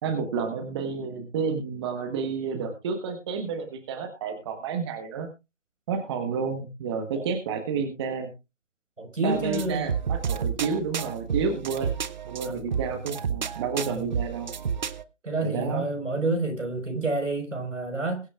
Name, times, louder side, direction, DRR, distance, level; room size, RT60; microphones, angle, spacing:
voice 1, 0.0-5.3 5.9-8.3 9.2-11.9 12.2-14.5 15.4-15.8, right 5 dB, 20° right, 1.3 m, -30 dB
voice 2, 9.0-9.9 12.4-12.6 13.8-14.1 15.2-18.2, right 2 dB, 90° right, 4.9 m, -29 dB
sound 1, 9.3-15.0, right 7 dB, 40° right, 0.8 m, -31 dB
22.0 x 8.2 x 2.4 m
figure-of-eight pair, 155°, 36 cm